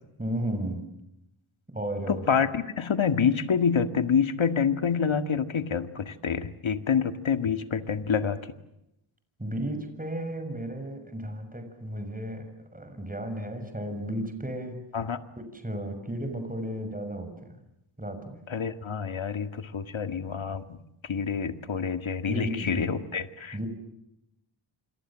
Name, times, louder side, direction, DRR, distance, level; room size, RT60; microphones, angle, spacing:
voice 1, 0.2-0.8 1.7-2.2 9.4-12.5 12.7-14.8 15.4-17.5 18.0-18.3 22.2-22.9 23.5-23.7, right 1 dB, 15° right, 7 dB, 6.6 m, -34 dB
voice 2, 2.1-8.4 14.9-15.2 18.5-23.6, left 6 dB, 75° left, 9 dB, 1.9 m, -27 dB
28.5 x 27.0 x 7.5 m, 0.84 s
wide cardioid pair, 85°, 47 cm